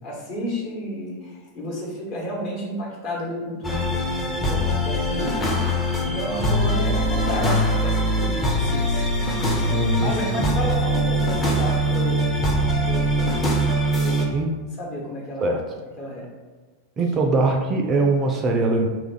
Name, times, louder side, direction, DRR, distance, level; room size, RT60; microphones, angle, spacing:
voice 1, 0.0-3.9 4.5-5.4 6.0-9.1 10.0-12.2 12.8-13.6 13.9-14.2 14.8-15.6 16.0-16.3, left 1 dB, 40° left, -4 dB, 1.1 m, -31 dB
sound 1, 3.6-14.3, equal, 15° left, 0.6 m, -22 dB
voice 2, 9.7-10.1 14.3-14.6 15.4-15.6 17.0-18.9, right 2 dB, 25° right, 2 dB, 0.4 m, -21 dB
2.9 x 2.4 x 3.8 m, 1.4 s
figure-of-eight pair, 90°, 0 cm